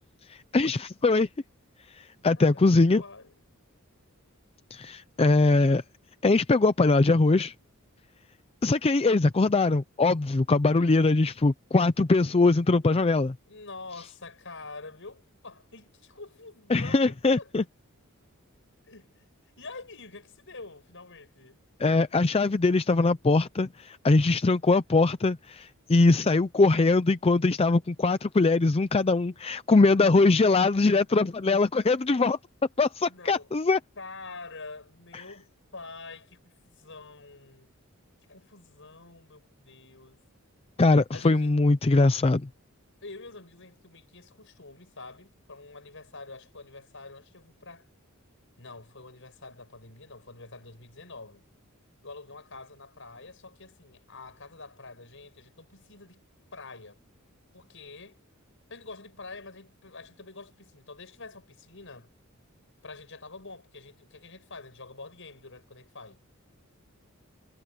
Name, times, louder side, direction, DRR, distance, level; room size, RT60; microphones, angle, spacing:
voice 1, 0.3-1.3 1.9-3.0 4.7-5.8 6.2-7.5 8.6-13.4 16.7-17.6 21.8-32.4 32.8-33.8 35.1-35.2 40.8-42.5, left 3 dB, 25° left, 0.5 m, -22 dB
voice 2, 2.4-3.5 10.7-10.9 13.5-17.5 18.9-19.1 19.6-21.6 30.2-30.4 33.1-33.5 34.0-37.7 38.3-40.2 41.1-41.5 43.0-47.9 48.6-51.4 52.0-56.2 56.5-57.0 57.5-58.2 58.7-62.1 62.8-66.2, left 3 dB, 60° left, 7.9 m, -46 dB
head